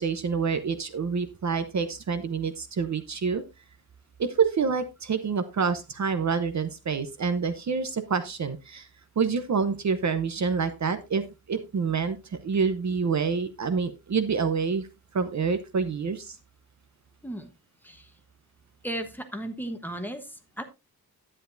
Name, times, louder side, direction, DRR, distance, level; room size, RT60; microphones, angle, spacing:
voice 1, 0.0-3.4 4.2-8.9 9.2-14.9 15.1-16.4, right 5 dB, 45° right, 11 dB, 0.8 m, -27 dB
voice 2, 18.8-20.6, right 1 dB, 5° left, 5 dB, 1.1 m, -35 dB
10.5 x 9.9 x 2.6 m, 0.25 s
wide cardioid pair, 180°, 38 cm